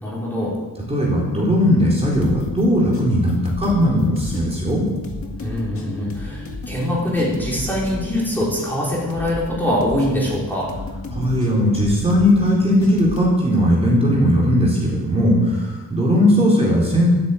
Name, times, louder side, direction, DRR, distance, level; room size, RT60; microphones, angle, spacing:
voice 1, 0.0-0.5 5.4-10.7, left 1 dB, 5° left, -6 dB, 4.3 m, -23 dB
voice 2, 0.9-4.9 11.1-17.1, equal, 15° right, -4 dB, 4.2 m, -18 dB
sound 1, 2.1-13.2, left 2 dB, 35° left, 2.0 m, -34 dB
13.0 x 9.7 x 8.5 m, 1.2 s
wide cardioid pair, 145°, 36 cm